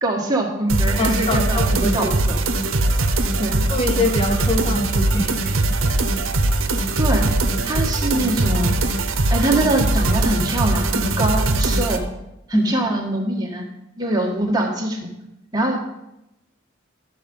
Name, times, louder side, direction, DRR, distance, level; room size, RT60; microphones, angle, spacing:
voice 1, 0.0-2.4 3.4-3.6 7.0-7.3 7.6-8.7 9.3-12.0 12.5-13.6 14.0-15.1 15.5-15.8, right 1 dB, 20° right, -1 dB, 1.5 m, -23 dB
sound 1, 0.7-12.0, right 2 dB, 70° right, 0.8 m, -21 dB
voice 2, 1.0-2.2 3.7-5.6 5.9-6.0 12.5-12.7, left 1 dB, 25° left, 3 dB, 0.7 m, -24 dB
13.0 x 4.9 x 5.3 m, 0.90 s
head